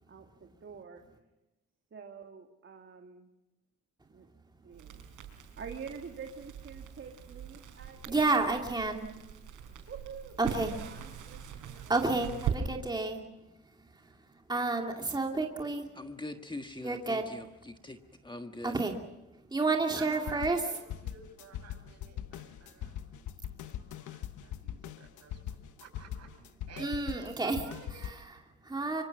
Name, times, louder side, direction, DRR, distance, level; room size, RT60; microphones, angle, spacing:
voice 1, 0.1-1.0 1.9-3.3 4.1-4.3 4.6-5.1 5.6-8.3 9.9-11.9, right 6 dB, 40° right, 3 dB, 2.4 m, -47 dB
Crackle, 4.7-12.6, right 9 dB, 85° right, 5.3 m, -41 dB
voice 2, 8.1-9.1 10.4-10.8 11.9-13.3 13.8-15.9 16.8-17.3 18.6-18.9 19.5-20.6 26.8-27.6 28.0-29.0, right 3 dB, 15° right, 2 dB, 2.6 m, -31 dB
voice 3, 15.9-18.8, left 2 dB, 15° left, 6 dB, 1.5 m, -43 dB
voice 4, 20.0-23.1 23.6-28.2 28.9-29.0, right 5 dB, 60° right, 4 dB, 6.9 m, -52 dB
sound 1, 20.1-28.1, left 10 dB, 80° left, 1.2 m, -41 dB
25.0 x 24.5 x 6.1 m, 0.97 s
cardioid pair, 90°, 30 cm